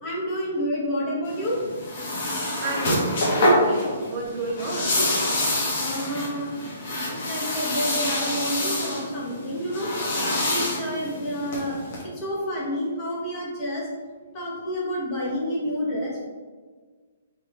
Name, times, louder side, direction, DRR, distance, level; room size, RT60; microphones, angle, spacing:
voice 1, 0.0-1.7 5.4-5.5 5.8-6.6 7.3-9.9 10.4-13.9 14.3-16.3, equal, 25° left, -5 dB, 0.8 m, -29 dB
sound 1, 1.3-12.0, left 1 dB, 40° left, 1.1 m, -26 dB
voice 2, 2.6-5.0, right 3 dB, 25° right, -2 dB, 0.7 m, -32 dB
3.6 x 3.2 x 3.3 m, 1.5 s
hypercardioid pair, 170°, 0 cm